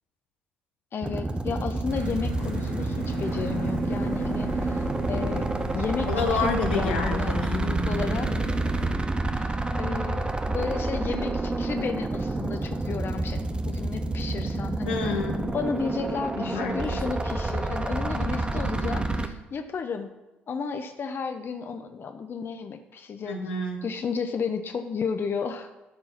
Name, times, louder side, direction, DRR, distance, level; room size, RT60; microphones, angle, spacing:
voice 1, 0.9-5.5 5.7-8.3 9.4-15.0 15.5-20.2 20.5-23.4 23.8-25.7, left 5 dB, 45° left, 7 dB, 0.8 m, -33 dB
sound 1, 1.0-19.3, right 2 dB, 20° right, 1.0 m, -29 dB
sound 2, 1.9-8.9, right 1 dB, 80° right, 2.6 m, -36 dB
voice 2, 6.1-7.7 14.8-15.6 16.4-17.0 23.2-23.9, left 3 dB, 85° left, 2 dB, 1.3 m, -29 dB
12.5 x 4.6 x 5.9 m, 1.1 s
hypercardioid pair, 45°, 5 cm